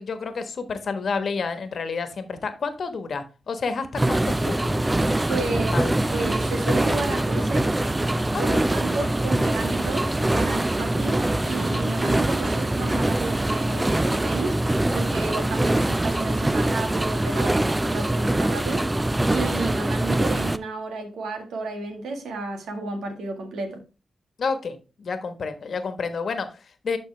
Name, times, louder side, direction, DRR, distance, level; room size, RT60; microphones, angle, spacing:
voice 1, 0.0-4.8 5.6-5.9 8.3-8.6 24.4-27.0, left 5 dB, 65° left, 1.3 m, -30 dB
sound 1, 4.0-20.6, right 1 dB, 20° right, 0.6 m, -23 dB
voice 2, 5.3-5.7 6.1-7.7 8.4-14.6 14.9-18.9 19.3-23.8, right 3 dB, 90° right, 1.6 m, -32 dB
11.5 x 4.2 x 3.3 m
supercardioid pair, 50°, 0 cm